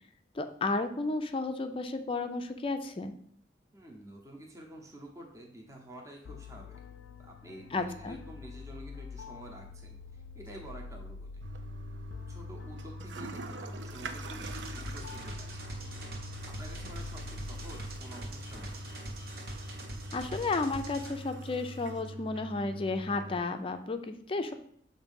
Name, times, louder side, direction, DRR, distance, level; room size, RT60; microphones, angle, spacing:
voice 1, 0.3-3.1 7.7-8.2 20.1-24.5, left 3 dB, 30° left, 7 dB, 0.4 m, -33 dB
voice 2, 3.7-6.8 7.2-11.3 12.3-15.6 16.4-18.9, right 1 dB, 15° right, 0 dB, 0.8 m, -49 dB
sound 1, 6.3-18.0, left 4 dB, 90° left, 0.4 m, -46 dB
Toilet flush, 11.4-23.4, right 1 dB, 85° right, 0.5 m, -43 dB
sound 2, 14.4-21.1, right 1 dB, 55° right, 1.2 m, -44 dB
6.9 x 2.7 x 5.3 m, 0.65 s
head